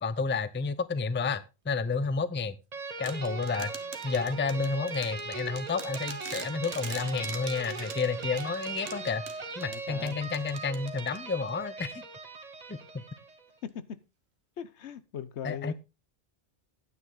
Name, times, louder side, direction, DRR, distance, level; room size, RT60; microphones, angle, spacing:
voice 1, 0.0-2.6 3.0-3.7 4.0-9.2 9.6-12.0 12.7-12.8 15.4-15.7, left 4 dB, 15° left, 0.4 m, -31 dB
sound 1, 2.7-13.5, right 4 dB, 40° right, 1.2 m, -39 dB
sound 2, 3.0-11.5, right 6 dB, 75° right, 1.4 m, -45 dB
voice 2, 9.6-10.2 13.6-14.0 14.6-15.7, left 9 dB, 85° left, 1.1 m, -39 dB
10.0 x 9.4 x 3.8 m
omnidirectional pair, 1.1 m